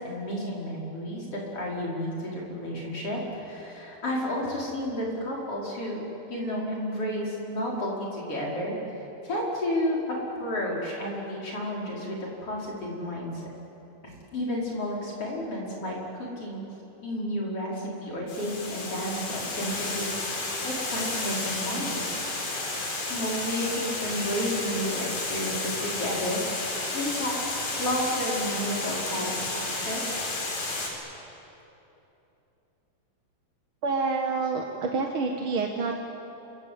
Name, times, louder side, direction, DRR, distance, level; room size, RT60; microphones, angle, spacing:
voice 1, 0.0-6.0 6.3-8.8 9.2-13.5 14.0-16.6 17.0-22.0 23.1-26.6 26.9-27.5 27.8-30.0, equal, 40° left, -3 dB, 6.1 m, -31 dB
Water, 18.3-30.9, left 2 dB, 80° left, 6.1 m, -32 dB
voice 2, 33.8-36.0, right 4 dB, 50° right, 2 dB, 1.8 m, -28 dB
27.5 x 24.5 x 8.4 m, 3.0 s
omnidirectional pair, 3.9 m